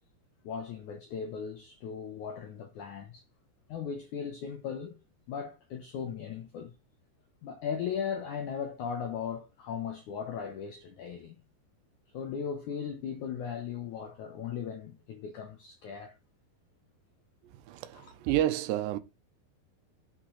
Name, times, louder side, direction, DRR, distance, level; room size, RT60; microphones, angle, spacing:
voice 1, 0.4-3.2 3.7-5.0 5.3-6.7 7.4-11.4 12.1-16.2 17.9-18.1, left 7 dB, 80° left, 1.7 m, -37 dB
voice 2, 17.4-19.0, right 13 dB, 85° right, 3.0 m, -30 dB
12.0 x 6.2 x 3.2 m
omnidirectional pair, 4.9 m